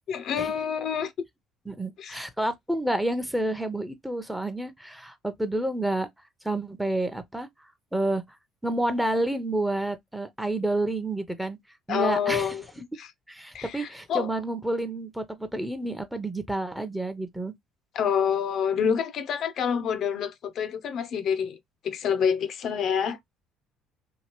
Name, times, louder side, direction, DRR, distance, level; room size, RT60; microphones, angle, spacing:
voice 1, 0.1-1.1 2.0-2.2 11.9-12.6 13.0-13.1 13.5-14.3 17.9-21.6 21.8-23.2, left 7 dB, 60° left, 0.5 m, -27 dB
voice 2, 1.7-6.1 6.4-7.5 7.9-8.2 8.6-11.6 11.9-12.5 13.3-17.5, right 1 dB, 5° right, 0.7 m, -29 dB
2.9 x 2.8 x 2.9 m
supercardioid pair, 85°, 0 cm